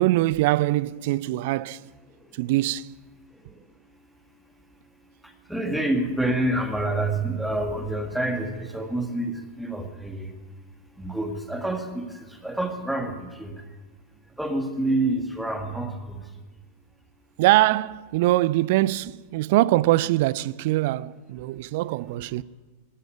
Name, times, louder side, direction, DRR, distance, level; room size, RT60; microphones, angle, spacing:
voice 1, 0.0-1.8 2.3-2.9 17.4-22.4, right 17 dB, 50° right, 0.4 m, -23 dB
voice 2, 5.2-10.3 10.9-13.7 14.3-16.3, right 1 dB, ahead, 1.7 m, -28 dB
13.0 x 10.0 x 9.6 m
figure-of-eight pair, 90°, 0 cm